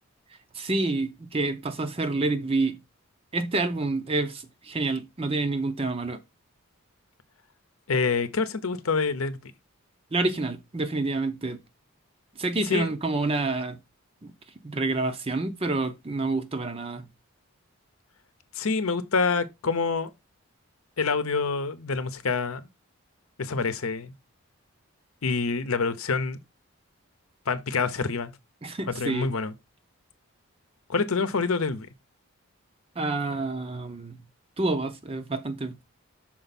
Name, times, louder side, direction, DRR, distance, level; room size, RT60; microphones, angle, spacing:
voice 1, 0.5-2.8 3.3-6.2 10.1-11.6 12.4-13.8 14.2-14.3 14.6-17.1 28.6-29.3 33.0-34.2 34.6-35.8, right 2 dB, 25° right, 0.6 m, -28 dB
voice 2, 7.9-9.5 12.7-12.9 18.5-20.1 21.0-22.7 23.4-24.1 25.2-26.4 27.5-28.3 28.9-29.5 30.9-31.9, left 4 dB, 75° left, 0.8 m, -26 dB
6.1 x 4.5 x 4.1 m
head